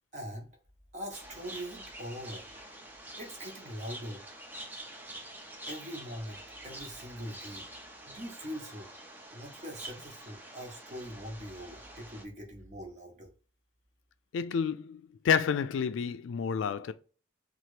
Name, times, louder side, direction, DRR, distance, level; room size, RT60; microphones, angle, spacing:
voice 1, 0.1-0.5 0.9-2.5 3.2-4.2 5.7-6.4 6.6-7.6 8.0-8.9 9.3-13.3, equal, 40° right, 0.9 m, -42 dB
sound 1, 1.1-12.2, right 1 dB, 10° right, 0.4 m, -47 dB
voice 2, 14.3-16.9, left 7 dB, 85° left, 0.3 m, -29 dB
2.9 x 2.4 x 3.1 m
head